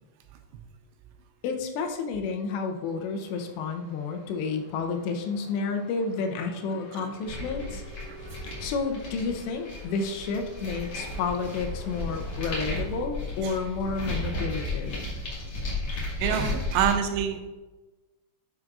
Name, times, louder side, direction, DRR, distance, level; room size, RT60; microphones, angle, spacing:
voice 1, 1.4-7.8 8.6-14.9, left 4 dB, 85° left, 4 dB, 3.0 m, -31 dB
sound 1, 2.5-12.9, equal, 60° left, 2.3 m, -49 dB
sound 2, 7.3-16.9, left 2 dB, 40° left, 2.6 m, -34 dB
voice 2, 16.2-17.4, right 8 dB, 80° right, 6 dB, 2.8 m, -27 dB
10.5 x 6.6 x 2.4 m, 1.1 s
omnidirectional pair, 5.0 m